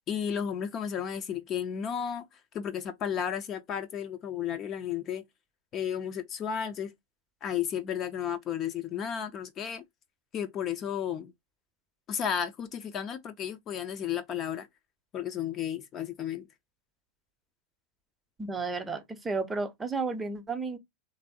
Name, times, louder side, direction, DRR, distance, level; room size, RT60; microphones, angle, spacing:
voice 1, 0.1-2.3 2.5-5.2 5.7-6.9 7.4-9.8 10.3-11.3 12.1-14.7 15.1-16.5, left 8 dB, 30° left, 0.4 m, -33 dB
voice 2, 18.4-20.8, right 4 dB, 10° right, 0.6 m, -32 dB
3.3 x 2.6 x 2.7 m
figure-of-eight pair, 90°, 0 cm